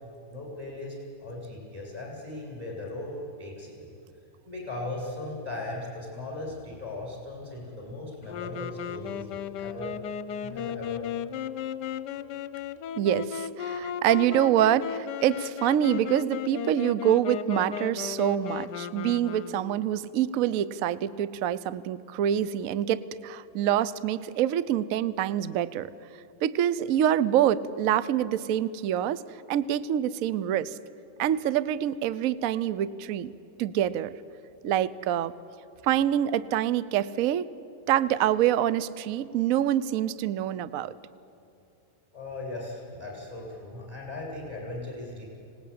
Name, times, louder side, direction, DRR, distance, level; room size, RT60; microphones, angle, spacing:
voice 1, 0.3-1.0 1.2-3.9 4.5-9.9 10.4-11.0 42.1-45.2, left 2 dB, 20° right, -3 dB, 7.4 m, -38 dB
Wind instrument woodwind instrument, 8.2-20.0, left 8 dB, 65° left, 1.2 m, -35 dB
voice 2, 13.0-25.9 26.4-29.2 29.5-30.8 31.2-33.3 33.6-34.1 34.6-35.3 35.8-37.5 37.9-41.0, right 11 dB, 70° right, 17 dB, 0.8 m, -26 dB
25.5 x 19.5 x 8.6 m, 2.8 s
omnidirectional pair, 2.2 m